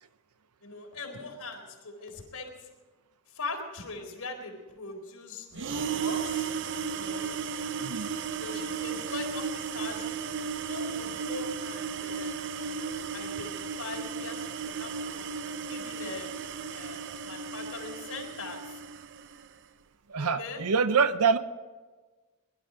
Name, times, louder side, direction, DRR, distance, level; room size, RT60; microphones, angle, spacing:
voice 1, 0.6-2.5 3.3-6.5 6.9-7.3 8.4-10.1 10.7-13.5 13.8-15.3 15.7-16.3 16.7-18.7 20.2-20.6, left 3 dB, 75° left, 1 dB, 4.0 m, -41 dB
sound 1, 5.5-19.5, right 6 dB, 55° right, 0.6 m, -35 dB
voice 2, 7.8-8.1 20.1-21.4, right 5 dB, 85° right, 12 dB, 0.8 m, -25 dB
22.5 x 12.0 x 5.1 m, 1.3 s
head